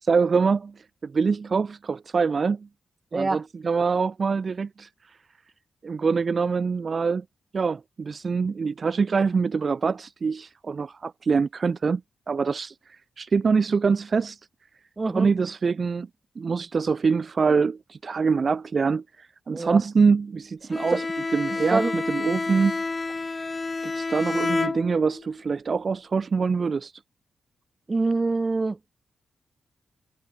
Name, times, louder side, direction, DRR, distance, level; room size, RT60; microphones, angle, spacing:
voice 1, 0.0-2.7 3.1-5.2 5.8-7.2 7.5-12.0 12.3-14.4 15.1-16.1 16.4-21.0 21.3-22.8 23.8-26.9, right 5 dB, 45° right, 0.4 m, -24 dB
voice 2, 15.0-15.3 19.5-19.8 20.9-21.0 21.7-21.9 27.9-28.8, right 3 dB, 30° right, 0.9 m, -25 dB
Bowed string instrument, 20.7-25.3, left 3 dB, 30° left, 0.4 m, -29 dB
cardioid pair, 95°, 0 cm